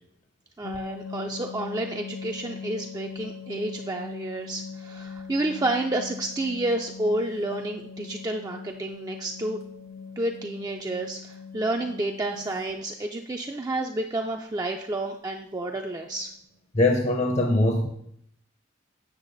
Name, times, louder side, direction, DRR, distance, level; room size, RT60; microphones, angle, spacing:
sound 1, 0.6-12.7 14.6-14.8 15.1-15.2 15.6-15.7 16.0-16.3, left 5 dB, 90° left, 0.8 m, -41 dB
voice 1, 0.6-9.6 10.2-16.3, right 2 dB, 20° right, 2 dB, 0.4 m, -30 dB
voice 2, 16.7-17.9, left 2 dB, 35° left, 3 dB, 0.6 m, -22 dB
8.1 x 6.2 x 3.9 m, 0.71 s
head